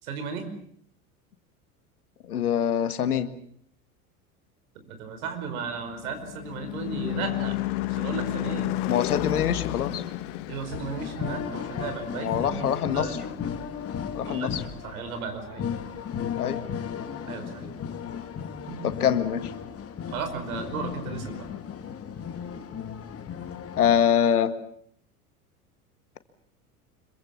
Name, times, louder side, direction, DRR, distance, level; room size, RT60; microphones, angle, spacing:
voice 1, 0.0-0.5 4.9-7.6 7.9-8.7 10.5-13.3 14.2-15.7 17.2-17.7 18.7-18.8 20.1-21.5, right 5 dB, 70° right, 8 dB, 5.1 m, -35 dB
voice 2, 2.3-3.3 8.9-10.0 12.2-13.2 14.1-14.6 16.4-16.6 18.8-19.5 23.8-24.5, left 9 dB, 80° left, 11 dB, 1.8 m, -24 dB
Car passing by / Truck / Engine, 5.5-14.2, left 16 dB, 55° left, 1.4 m, -33 dB
sound 1, 10.7-24.1, left 7 dB, 30° left, 2.8 m, -35 dB
25.5 x 23.0 x 7.2 m, 0.64 s
hypercardioid pair, 80°, 44 cm